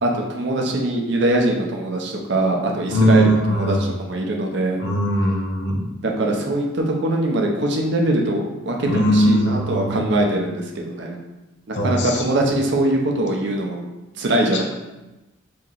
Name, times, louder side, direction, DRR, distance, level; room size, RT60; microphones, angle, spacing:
voice 1, 0.0-4.8 6.0-11.2 11.7-13.8 14.2-14.6, right 1 dB, 60° right, 1 dB, 0.6 m, -22 dB
voice 2, 2.9-4.0 4.8-6.0 8.8-10.1 11.7-12.3 14.5-14.6, equal, 60° left, 1 dB, 0.6 m, -20 dB
3.0 x 2.8 x 3.7 m, 1.0 s
head